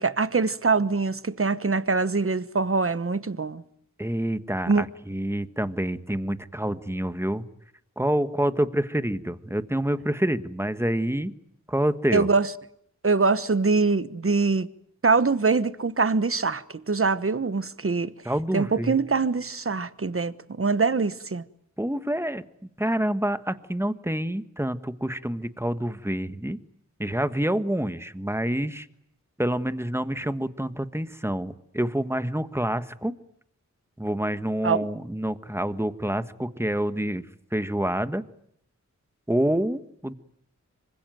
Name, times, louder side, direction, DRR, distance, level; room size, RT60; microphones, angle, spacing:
voice 1, 0.0-3.6 4.7-4.8 12.1-12.5 13.0-14.7 15.0-18.1 18.5-21.4 34.6-34.9, right 4 dB, 45° right, 1.2 m, -23 dB
voice 2, 4.0-7.4 8.0-11.3 11.7-12.3 18.2-19.0 21.8-22.4 22.8-26.6 27.0-28.9 29.4-33.1 34.0-37.2 37.5-38.2 39.3-40.1, right 1 dB, 10° right, 1.4 m, -27 dB
26.0 x 24.5 x 9.2 m
wide cardioid pair, 75°, 30 cm